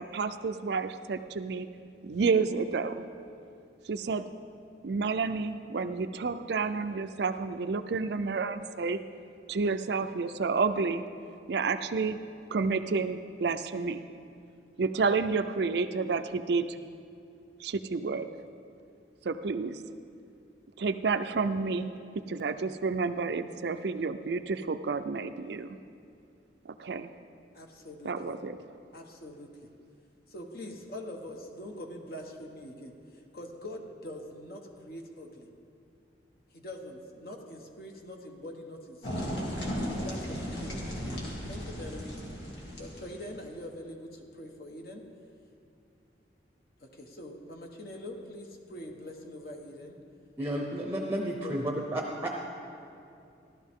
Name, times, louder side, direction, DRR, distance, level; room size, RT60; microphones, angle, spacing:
voice 1, 0.0-1.7 2.0-3.0 3.9-4.3 4.8-9.0 9.5-11.0 11.5-12.2 12.5-14.0 14.8-16.8 17.6-18.3 19.2-19.8 20.8-25.8 26.7-27.1 28.0-28.6, right 4 dB, 65° right, 10 dB, 0.5 m, -30 dB
voice 2, 27.5-28.4 28.9-29.7 30.3-35.5 36.5-39.2 39.9-40.9 41.5-42.2 42.8-45.0 46.8-50.0 51.4-51.5, left 1 dB, 55° left, 2 dB, 1.2 m, -44 dB
sound 1, 39.0-43.4, equal, 75° left, 2.3 m, -35 dB
voice 3, 50.4-52.3, right 1 dB, 15° right, 0 dB, 0.7 m, -32 dB
15.5 x 12.0 x 3.7 m, 2.6 s
head